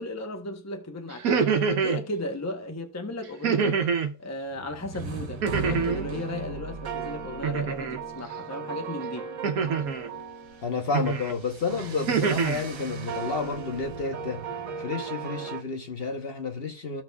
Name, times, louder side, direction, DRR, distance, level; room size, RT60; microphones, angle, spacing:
voice 1, 0.0-1.6 1.8-3.8 4.2-9.3, left 1 dB, 15° left, 0.8 m, -35 dB
sound 1, 1.1-2.0 3.4-4.1 5.4-6.1 7.4-8.0 9.4-10.1 10.9-11.3 11.8-12.6, right 6 dB, 85° right, 1.3 m, -25 dB
sound 2, 4.5-15.6, right 5 dB, 70° right, 1.5 m, -37 dB
voice 2, 10.6-14.4 14.8-17.0, left 4 dB, 45° left, 1.1 m, -30 dB
14.5 x 6.1 x 2.3 m
omnidirectional pair, 1.5 m